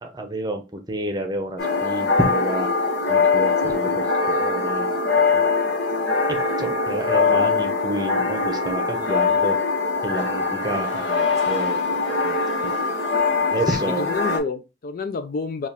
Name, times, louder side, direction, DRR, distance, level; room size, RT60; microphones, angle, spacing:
voice 1, 0.0-0.6 0.9-2.7 3.0-4.9 5.3-5.4 6.4-9.6 10.0-11.8 12.2-12.8 13.5-14.1, right 1 dB, 20° right, 0.7 m, -29 dB
sound 1, 1.6-14.4, left 4 dB, 70° left, 1.1 m, -22 dB
voice 2, 13.7-15.7, left 4 dB, 50° left, 0.4 m, -29 dB
4.3 x 2.4 x 3.5 m
head